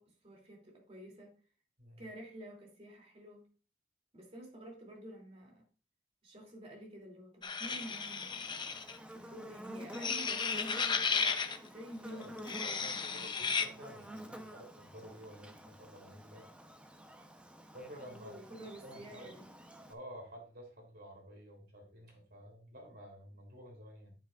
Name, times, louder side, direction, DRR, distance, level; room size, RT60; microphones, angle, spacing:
voice 1, 0.0-1.4 2.0-3.5 4.1-5.6 6.2-8.6 9.1-11.1 11.6-13.5 18.1-19.5, right 1 dB, 35° right, 2.9 m, -50 dB
sound 1, 7.4-9.0 9.9-11.6 12.4-13.7, left 5 dB, 25° left, 0.7 m, -34 dB
Buzz, 7.6-19.9, equal, 5° right, 0.8 m, -50 dB
voice 2, 12.6-16.4 17.7-18.3 18.8-19.3 19.9-24.1, equal, 55° right, 3.4 m, -51 dB
9.3 x 9.2 x 2.5 m
head